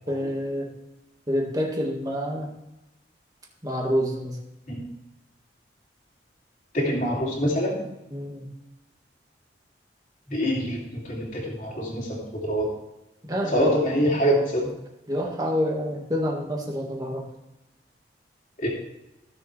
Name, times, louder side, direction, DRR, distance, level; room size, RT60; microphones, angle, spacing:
voice 1, 0.1-0.7 1.3-2.5 3.6-4.4 8.1-8.5 13.2-13.9 15.1-17.2, equal, 20° right, 0 dB, 1.7 m, -27 dB
voice 2, 6.7-7.8 10.3-12.7 13.5-14.7 18.6-18.7, equal, 45° left, -3 dB, 2.8 m, -25 dB
16.0 x 6.9 x 3.3 m, 0.94 s
head